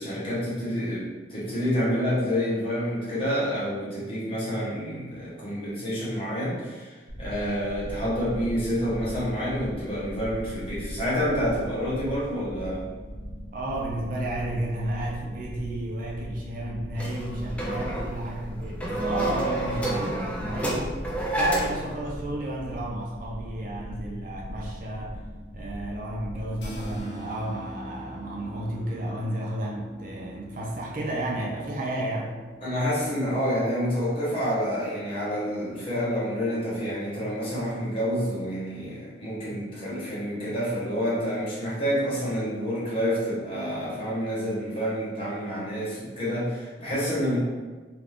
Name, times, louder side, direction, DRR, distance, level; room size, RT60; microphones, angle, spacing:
voice 1, 0.0-12.9 32.6-47.4, equal, 30° left, -8 dB, 1.0 m, -28 dB
sound 1, 7.1-27.0, equal, 75° right, 1.0 m, -39 dB
voice 2, 13.5-21.0 21.4-25.1 25.5-32.3, right 1 dB, 50° right, -3 dB, 0.5 m, -32 dB
sound 2, 17.0-21.9, right 1 dB, 5° left, 0.4 m, -29 dB
sound 3, 26.6-33.0, right 1 dB, 75° left, 0.6 m, -44 dB
2.4 x 2.4 x 3.4 m, 1.3 s
head